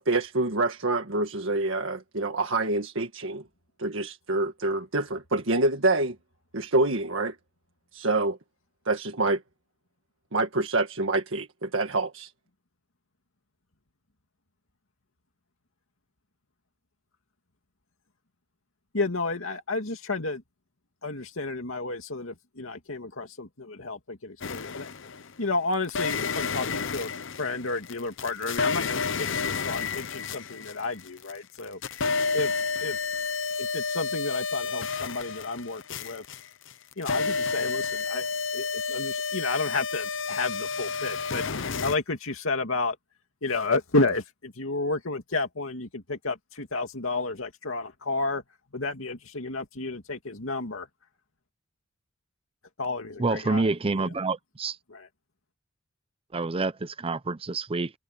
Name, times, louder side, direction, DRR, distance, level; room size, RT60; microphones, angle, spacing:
voice 1, 0.0-3.4 3.8-6.2 6.5-7.4 7.9-8.4 8.9-9.4 10.3-12.3, right 2 dB, 70° right, 1.7 m, -26 dB
voice 2, 18.9-20.4 21.0-24.9 25.4-27.1 27.4-31.8 32.3-32.5 32.8-33.0 33.6-36.2 37.0-38.2 38.5-43.0 43.4-48.4 48.7-50.9 52.8-53.7 54.0-54.1 54.9-55.1, left 3 dB, 85° left, 2.4 m, -31 dB
sound 1, 24.4-25.3 25.9-31.3 31.6-42.0, left 5 dB, 65° left, 0.9 m, -30 dB
voice 3, 53.2-54.8 56.3-57.9, right 3 dB, 30° right, 0.6 m, -28 dB
head